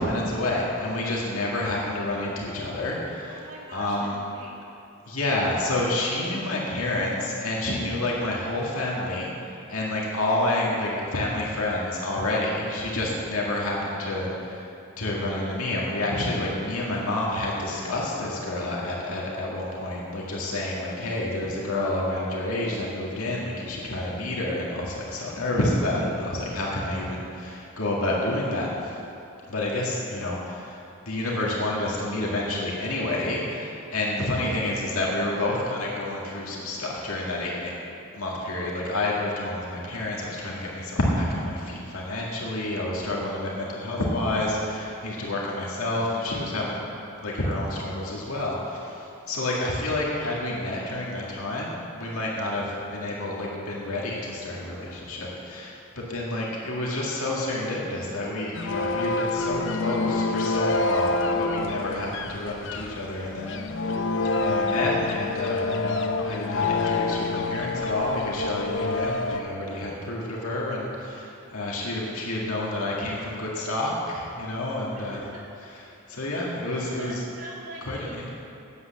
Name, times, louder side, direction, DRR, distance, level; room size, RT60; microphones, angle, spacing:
voice 1, 0.0-4.2 5.1-14.7 15.0-29.0 29.5-37.7 38.1-46.8 47.2-64.0 64.3-66.0 66.3-75.2 75.6-77.2 77.9-78.3, left 1 dB, 90° left, -4 dB, 2.0 m, -29 dB
voice 2, 3.3-4.6 45.1-45.4 56.6-56.7 71.7-72.0 75.0-75.4 77.0-78.3, right 1 dB, 85° right, -4 dB, 2.3 m, -44 dB
sound 1, 58.5-69.4, left 3 dB, 55° left, 0.6 m, -27 dB
9.5 x 8.0 x 7.3 m, 2.7 s
head